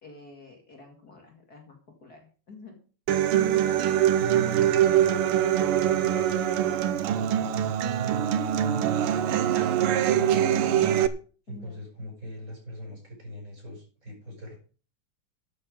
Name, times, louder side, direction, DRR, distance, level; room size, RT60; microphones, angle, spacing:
voice 1, 0.0-2.2 2.5-2.8 11.5-11.8, left 2 dB, 45° left, 2 dB, 2.8 m, -49 dB
Human voice / Acoustic guitar, 3.1-11.1, right 10 dB, 80° right, 1.8 m, -23 dB
voice 2, 4.2-10.8 11.5-14.6, right 2 dB, 35° right, 0 dB, 8.1 m, -40 dB
13.0 x 8.6 x 5.2 m, 0.37 s
omnidirectional pair, 2.4 m